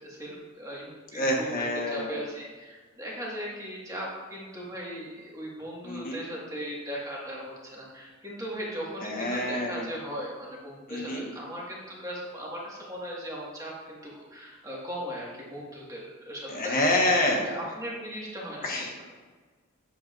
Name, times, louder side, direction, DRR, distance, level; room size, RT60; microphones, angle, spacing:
voice 1, 0.0-17.0 17.4-18.7, equal, 15° right, -4 dB, 1.7 m, -38 dB
voice 2, 1.1-2.2 5.8-6.2 9.0-9.9 10.9-11.3 16.5-17.5 18.6-18.9, left 1 dB, 45° left, -1 dB, 1.2 m, -27 dB
9.1 x 7.0 x 2.5 m, 1.4 s
head